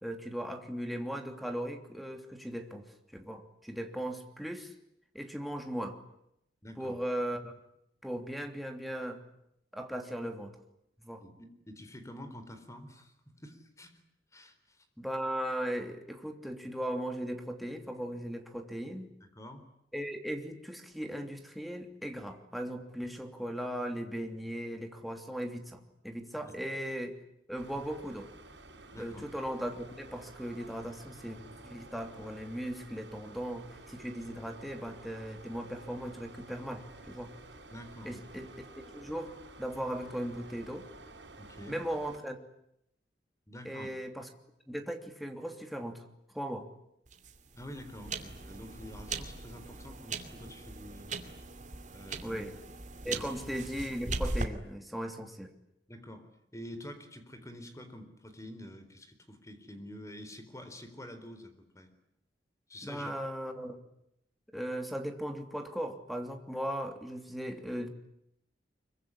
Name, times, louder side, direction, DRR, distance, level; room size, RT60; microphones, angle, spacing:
voice 1, 0.0-4.7 5.1-6.0 6.8-7.5 8.0-9.2 9.7-10.5 11.0-11.2 15.0-19.1 19.9-27.2 27.5-28.3 29.0-37.3 38.0-38.5 38.8-40.9 41.7-42.4 43.6-44.3 44.7-46.0 46.3-46.7 52.2-52.5 53.0-55.5 62.8-63.8 64.5-67.9, equal, ahead, 4 dB, 3.1 m, -38 dB
voice 2, 6.6-7.0 11.2-14.0 14.3-14.9 19.2-19.6 26.4-26.5 28.9-29.2 37.7-38.3 41.4-41.8 43.5-43.9 47.5-51.2 51.9-52.4 53.0-53.3 55.9-56.3 56.5-61.9 62.7-63.1, equal, 20° left, 9 dB, 4.1 m, -47 dB
sound 1, 27.6-42.2, right 2 dB, 85° right, 8.0 m, -52 dB
sound 2, 47.1-54.4, right 3 dB, 45° right, 2.6 m, -39 dB
25.5 x 23.5 x 10.0 m, 0.77 s
head